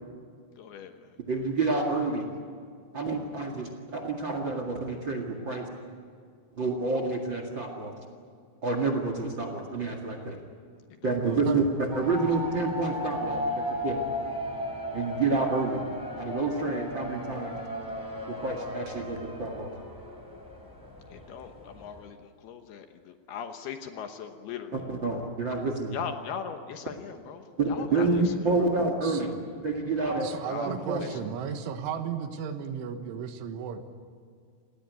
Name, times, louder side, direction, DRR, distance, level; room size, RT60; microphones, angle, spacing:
voice 1, 0.6-1.2 11.0-11.4 21.1-24.8 25.9-28.7 30.0-31.6, left 7 dB, 70° left, 6 dB, 2.7 m, -40 dB
voice 2, 1.3-2.3 2.9-5.7 6.5-7.9 8.6-10.4 11.0-14.0 14.9-15.8 16.2-17.6 18.3-19.7 24.7-26.0 27.6-29.4 29.6-30.3 30.7-31.0, right 3 dB, 50° right, 4 dB, 1.4 m, -28 dB
voice 3, 11.1-11.7 29.0-29.2 30.2-33.8, right 7 dB, 85° right, 8 dB, 3.9 m, -34 dB
sound 1, 11.9-22.0, left 1 dB, 5° left, 3.4 m, -36 dB
28.0 x 19.0 x 9.4 m, 2.2 s
omnidirectional pair, 5.5 m